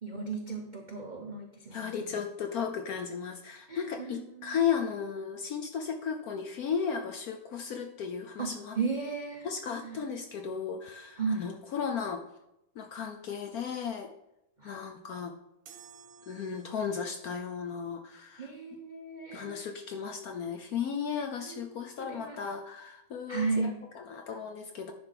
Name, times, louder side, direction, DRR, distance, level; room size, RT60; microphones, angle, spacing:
voice 1, 0.0-2.2 3.7-4.5 8.4-9.4 9.8-10.0 11.2-11.5 14.6-14.8 18.4-19.6 21.4-22.4 23.3-23.8, right 4 dB, 65° right, 2 dB, 0.4 m, -35 dB
voice 2, 1.7-8.8 9.4-12.2 12.8-14.1 14.6-15.3 16.3-18.5 19.3-24.9, left 7 dB, 65° left, 4 dB, 0.9 m, -35 dB
sound 1, 15.7-17.2, right 7 dB, 85° right, 1.9 m, -54 dB
10.5 x 3.5 x 5.8 m, 0.86 s
omnidirectional pair, 2.1 m